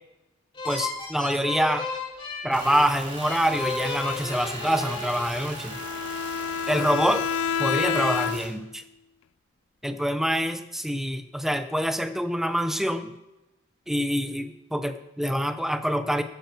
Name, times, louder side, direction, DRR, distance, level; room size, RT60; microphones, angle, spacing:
sound 1, 0.5-6.1, left 4 dB, 25° left, 3.1 m, -34 dB
voice 1, 0.7-1.9 2.4-5.8 6.7-7.2 7.6-8.8 9.8-13.1 13.9-16.2, equal, ahead, 9 dB, 0.8 m, -26 dB
sound 2, 2.5-8.5, right 2 dB, 25° right, 4.4 m, -40 dB
Bowed string instrument, 5.7-8.7, left 8 dB, 75° left, 0.4 m, -28 dB
14.5 x 9.0 x 6.9 m, 0.97 s
head